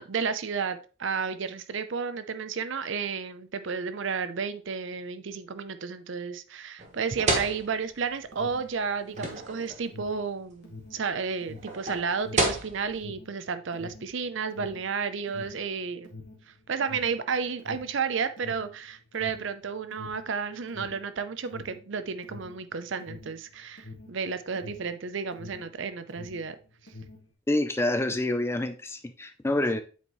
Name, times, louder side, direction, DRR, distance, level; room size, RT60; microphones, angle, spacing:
voice 1, 0.0-16.1 16.5-26.6 26.8-26.9, right 5 dB, 65° right, 0.5 m, -32 dB
sound 1, 6.8-13.0, right 2 dB, 35° right, 1.2 m, -31 dB
Alarm, 8.1-25.8 26.0-27.3, left 3 dB, 55° left, 1.6 m, -46 dB
voice 2, 27.5-29.8, left 1 dB, 10° left, 0.4 m, -27 dB
8.1 x 4.5 x 3.0 m
head